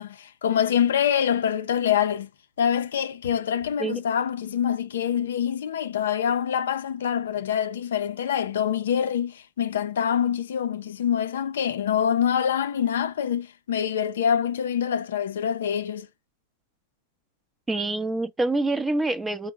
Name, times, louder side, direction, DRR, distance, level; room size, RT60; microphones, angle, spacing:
voice 1, 0.0-2.3 2.6-16.1, left 8 dB, 75° left, 0.4 m, -25 dB
voice 2, 17.7-19.5, right 2 dB, 10° right, 0.6 m, -26 dB
3.6 x 2.0 x 3.4 m
hypercardioid pair, 110°, 0 cm